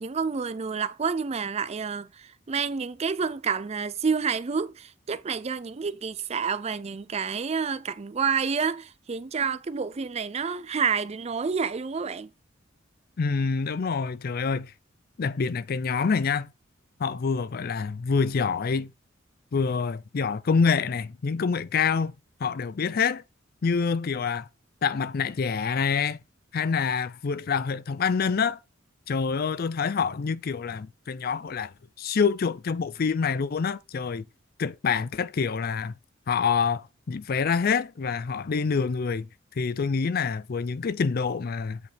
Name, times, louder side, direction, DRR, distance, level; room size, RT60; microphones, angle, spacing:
voice 1, 0.0-12.3, right 5 dB, 35° right, 0.4 m, -29 dB
voice 2, 13.2-14.7 15.2-16.5 17.0-18.9 19.5-22.1 22.4-23.2 23.6-24.5 24.8-26.2 26.5-28.6 29.1-31.7 32.0-34.2 34.6-35.9 36.3-39.3 39.6-41.8, left 5 dB, 50° left, 0.4 m, -26 dB
8.1 x 5.1 x 3.4 m
head